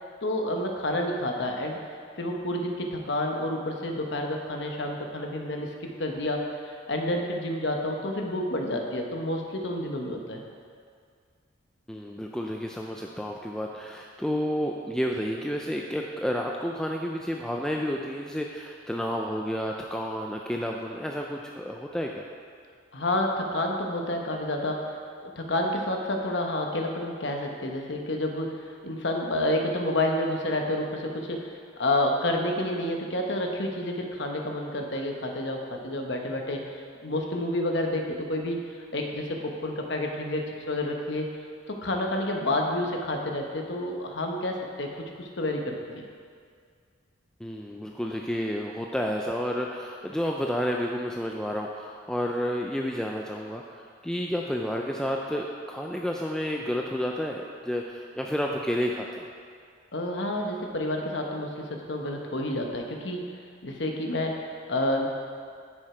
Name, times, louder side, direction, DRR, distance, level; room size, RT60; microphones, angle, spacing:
voice 1, 0.2-1.8 2.2-5.7 6.0-10.4 22.9-24.8 25.2-31.5 31.8-36.6 37.0-38.6 38.9-41.3 41.7-46.0 59.9-63.3 63.6-65.1, left 1 dB, 65° left, 2 dB, 1.0 m, -29 dB
voice 2, 11.9-22.3 47.4-59.3, equal, 5° left, 0 dB, 0.3 m, -30 dB
9.8 x 6.3 x 4.4 m, 2.1 s
head